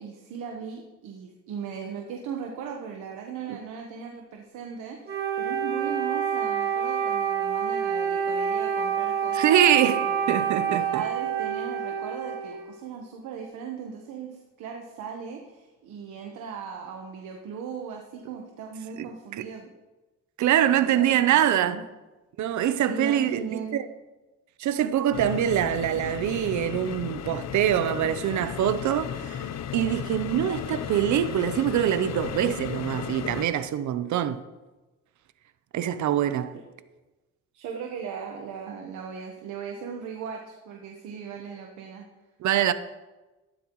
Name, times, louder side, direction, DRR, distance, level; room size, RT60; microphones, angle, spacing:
voice 1, 0.0-10.2 10.7-19.7 20.7-21.8 22.9-23.8 37.5-42.0, right 6 dB, 85° right, 1.2 m, -38 dB
Wind instrument woodwind instrument, 5.1-12.8, right 7 dB, 30° right, 2.4 m, -27 dB
voice 2, 9.3-11.0 19.0-19.1 19.4-19.5 20.4-21.8 22.4-23.8 24.6-34.4 35.7-36.6 42.4-42.7, right 10 dB, 70° right, 0.7 m, -24 dB
sound 1, 25.1-33.5, left 9 dB, 60° left, 0.7 m, -35 dB
13.5 x 12.0 x 3.1 m
cardioid pair, 90°, 30 cm